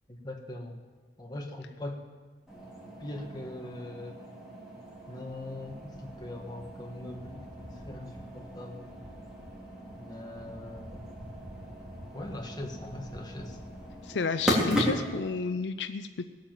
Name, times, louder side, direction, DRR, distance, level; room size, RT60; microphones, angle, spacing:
voice 1, 0.1-0.8 1.2-2.0 3.0-4.2 5.1-8.9 10.0-11.2 12.1-13.6, left 1 dB, 25° left, 1 dB, 1.8 m, -41 dB
sound 1, 2.5-15.3, equal, 5° right, 3.4 m, -37 dB
voice 2, 14.0-16.3, left 5 dB, 70° left, 10 dB, 0.5 m, -31 dB
19.5 x 8.8 x 7.4 m, 1.3 s
head